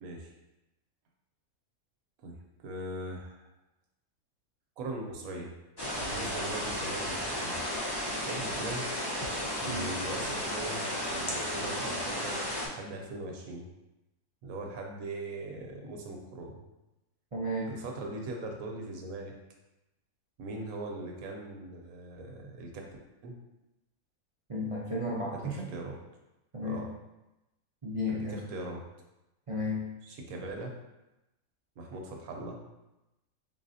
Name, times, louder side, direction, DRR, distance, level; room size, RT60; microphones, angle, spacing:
voice 1, 0.0-0.3 2.2-3.5 4.8-5.5 5.8-7.6 8.2-8.9 9.6-13.7 14.4-16.6 17.7-19.3 20.4-22.9 23.2-23.4 25.3-26.0 26.6-26.9 28.1-28.8 30.0-30.7 31.8-32.6, right 2 dB, 90° right, 1 dB, 1.2 m, -40 dB
sound 1, 5.8-12.7, equal, 35° left, 0.4 m, -33 dB
voice 2, 17.3-17.7 24.5-25.6 26.5-26.8 27.8-28.4 29.5-29.9, left 1 dB, 55° right, -6 dB, 0.3 m, -33 dB
4.0 x 3.5 x 2.7 m, 0.96 s
omnidirectional pair, 1.5 m